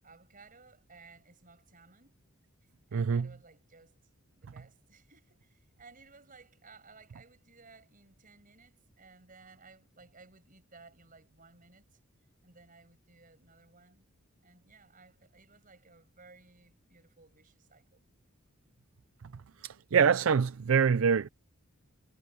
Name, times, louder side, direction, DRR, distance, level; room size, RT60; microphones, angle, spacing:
voice 1, 0.0-2.2 2.9-4.0 4.4-12.0 12.4-14.1 14.4-18.0, right 4 dB, 40° right, 6.7 m, -58 dB
voice 2, 2.9-3.3 19.6-21.3, right 6 dB, 70° right, 0.5 m, -25 dB
head